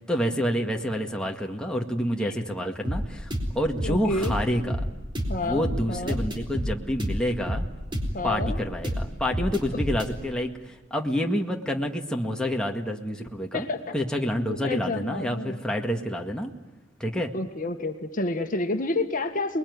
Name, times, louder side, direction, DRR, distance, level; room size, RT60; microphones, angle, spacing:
voice 1, 0.1-4.8 5.4-7.6 8.2-13.7 13.9-16.5 17.0-17.3, equal, 5° left, 1 dB, 1.9 m, -28 dB
sound 1, 2.8-10.1, equal, 25° right, 4.1 m, -30 dB
voice 2, 3.8-4.4 5.3-6.2 8.1-8.6 13.5-14.0 14.6-15.6 17.2-19.6, left 2 dB, 45° left, 6 dB, 1.8 m, -29 dB
29.0 x 21.5 x 9.6 m, 1.2 s
head